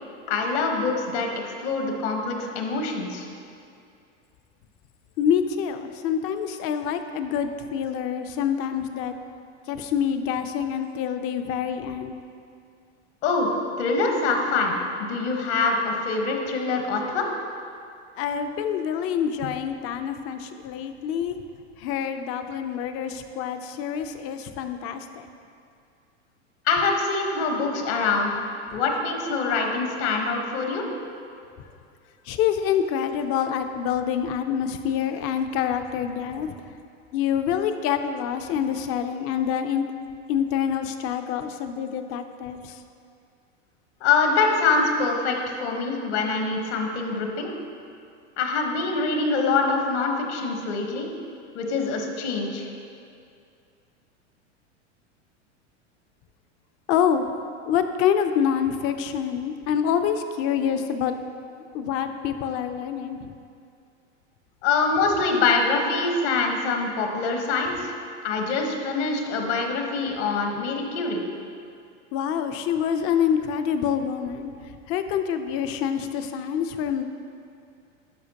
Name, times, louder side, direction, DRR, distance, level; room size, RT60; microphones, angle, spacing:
voice 1, 0.3-1.3 1.6-3.3 13.2-17.3 26.6-28.4 28.7-30.8 44.0-47.5 48.4-51.1 51.5-52.7 64.6-67.9 68.2-71.2, left 4 dB, 65° left, 2 dB, 1.3 m, -24 dB
voice 2, 5.2-9.1 9.7-12.1 18.2-21.4 21.8-25.3 32.3-36.5 37.1-39.8 40.3-42.8 56.9-57.2 57.7-61.1 61.7-63.4 72.1-74.5 74.9-77.0, left 8 dB, 40° left, 8 dB, 0.5 m, -26 dB
10.5 x 6.1 x 2.9 m, 2.4 s
hypercardioid pair, 115°, 36 cm